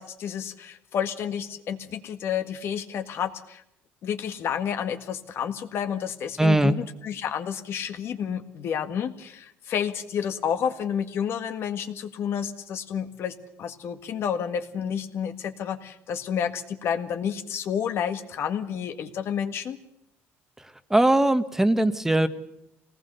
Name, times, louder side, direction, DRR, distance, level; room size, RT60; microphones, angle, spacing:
voice 1, 0.0-3.6 4.0-19.8, left 8 dB, 60° left, 7 dB, 1.7 m, -30 dB
voice 2, 6.4-6.7 20.9-22.3, right 1 dB, 10° right, 11 dB, 1.3 m, -20 dB
25.0 x 19.0 x 6.8 m, 0.80 s
cardioid pair, 105°, 5 cm